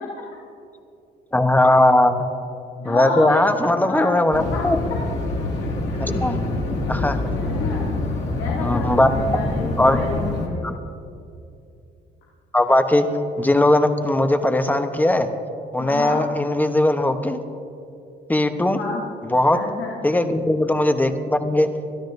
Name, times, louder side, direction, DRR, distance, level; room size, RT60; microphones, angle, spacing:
voice 1, 1.3-2.3 2.8-4.8 6.0-6.4 6.9-7.2 8.6-9.4 9.8-10.0 10.6-10.7 12.5-13.1 13.4-15.3 15.7-17.4 18.3-18.8 19.3-19.6 20.0-21.7, left 1 dB, 10° left, 7 dB, 1.0 m, -19 dB
voice 2, 2.8-4.2 4.5-4.6 5.9-6.2 7.4-7.9 8.4-10.6 15.8-16.2 18.7-19.0 19.5-19.9, left 4 dB, 90° left, -5 dB, 2.2 m, -30 dB
sound 1, 4.3-10.5, left 2 dB, 60° left, 2.3 m, -25 dB
23.5 x 13.0 x 2.7 m, 2.6 s
cardioid pair, 90°, 20 cm